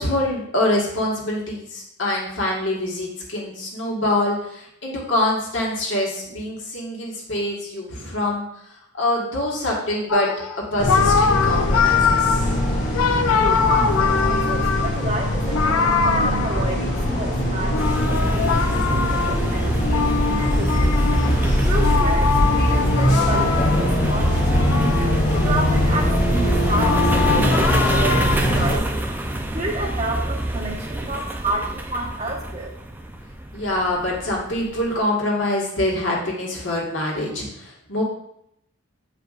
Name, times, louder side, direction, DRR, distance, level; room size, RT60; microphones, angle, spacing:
voice 1, 0.0-10.3 10.7-12.4 33.5-38.0, left 1 dB, 65° left, -3 dB, 1.6 m, -25 dB
sound 1, 10.1-17.1 17.7-24.0 24.5-25.7 26.1-28.4, left 6 dB, 90° left, 0.5 m, -23 dB
sound 2, 10.8-28.8, equal, 35° left, 1.1 m, -22 dB
voice 2, 13.4-21.0 21.3-29.0 29.5-32.7, right 2 dB, 30° right, -2 dB, 1.1 m, -30 dB
sound 3, 17.8-35.0, right 1 dB, 10° right, 0.4 m, -26 dB
8.1 x 4.9 x 2.4 m, 0.76 s
head